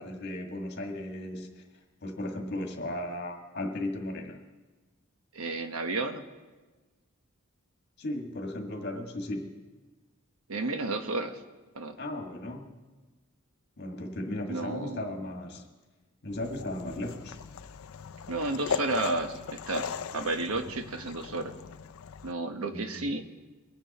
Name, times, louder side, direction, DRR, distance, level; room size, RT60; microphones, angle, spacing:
voice 1, 0.0-1.6 2.0-4.4 8.0-9.6 12.0-12.7 13.8-15.7 16.2-17.4 20.5-20.7 22.7-23.1, left 1 dB, 55° left, 3 dB, 1.7 m, -36 dB
voice 2, 5.3-6.2 10.5-11.4 11.7-12.0 14.5-15.2 18.3-21.5 22.2-23.2, right 2 dB, 85° right, 7 dB, 1.1 m, -32 dB
sound 1, 16.3-22.3, left 7 dB, 80° left, 0.4 m, -38 dB
23.0 x 9.6 x 4.2 m, 1.3 s
head